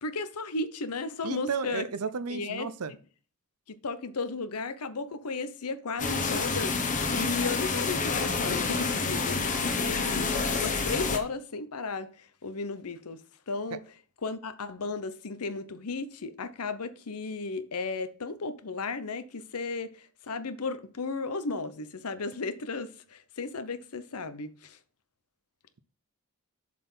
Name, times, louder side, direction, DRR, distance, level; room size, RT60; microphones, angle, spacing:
voice 1, 0.0-1.9 2.3-2.7 3.7-10.3 10.5-13.2 13.5-13.8 14.2-24.8, left 4 dB, 80° left, 0.8 m, -35 dB
voice 2, 1.2-2.9, right 5 dB, 80° right, 0.6 m, -33 dB
sound 1, 6.0-11.2, left 4 dB, 35° left, 1.1 m, -28 dB
7.3 x 4.3 x 5.5 m
head